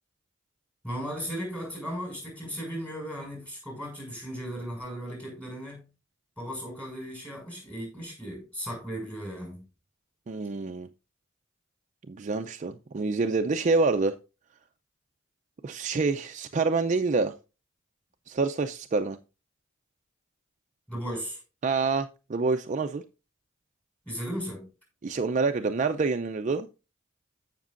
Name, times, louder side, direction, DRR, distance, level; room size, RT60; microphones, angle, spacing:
voice 1, 0.8-5.8 6.4-9.7 20.9-21.4 24.1-24.7, equal, 5° left, 5.6 m, -36 dB
voice 2, 10.3-10.9 12.1-14.2 15.6-17.3 18.3-19.2 21.6-23.0 25.0-26.7, right 4 dB, 35° right, 0.4 m, -27 dB
14.5 x 5.9 x 2.5 m
head